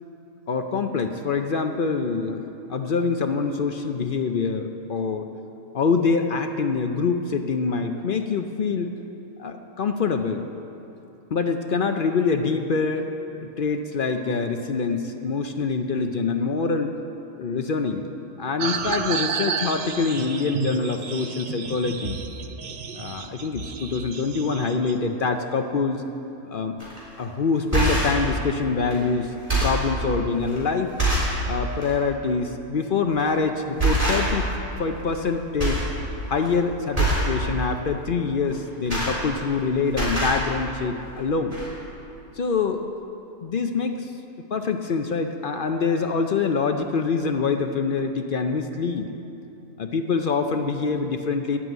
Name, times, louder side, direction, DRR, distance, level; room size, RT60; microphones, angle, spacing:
voice 1, 0.5-2.4 2.7-5.3 5.7-9.0 9.4-10.4 11.3-13.1 13.4-16.9 17.4-18.0 18.4-22.2 22.9-26.0 26.5-26.8 27.2-29.4 29.6-31.0 31.5-34.5 34.8-35.9 36.3-41.6 42.3-42.9 43.4-44.1 44.5-49.1 49.8-51.6, left 4 dB, 65° left, 6 dB, 0.5 m, -25 dB
sound 1, 18.6-24.9, right 5 dB, 55° right, 0.5 m, -31 dB
sound 2, 26.8-27.0 27.5-28.2 28.9-29.0 29.3-29.9 30.5-30.6 31.0-31.4 31.8-31.9 33.1-33.4 33.8-34.5 34.8-35.3 35.6-35.9 36.2-36.5 36.9-37.3 38.5-39.6 39.9-40.4 41.2-41.3 41.5-41.7, right 2 dB, 20° right, 4.0 m, -24 dB
11.0 x 8.6 x 9.0 m, 2.9 s
omnidirectional pair, 1.6 m